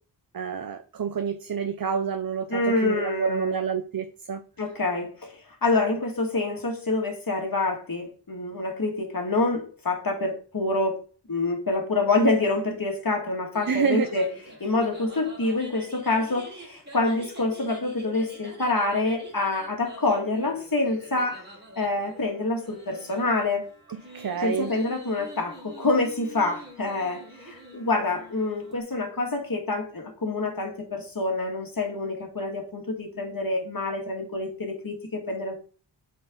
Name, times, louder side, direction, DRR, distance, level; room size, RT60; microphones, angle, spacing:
voice 1, 0.3-4.4 13.7-14.1 24.1-24.7, right 7 dB, 50° right, 8 dB, 0.7 m, -28 dB
voice 2, 2.5-3.6 4.6-11.0 11.3-14.3 14.6-21.4 21.8-23.7 24.4-35.5, left 2 dB, 50° left, 2 dB, 2.3 m, -27 dB
sound 1, 13.5-28.8, right 1 dB, 25° right, 3.2 m, -46 dB
7.9 x 4.7 x 3.9 m, 0.40 s
cardioid pair, 45°, 43 cm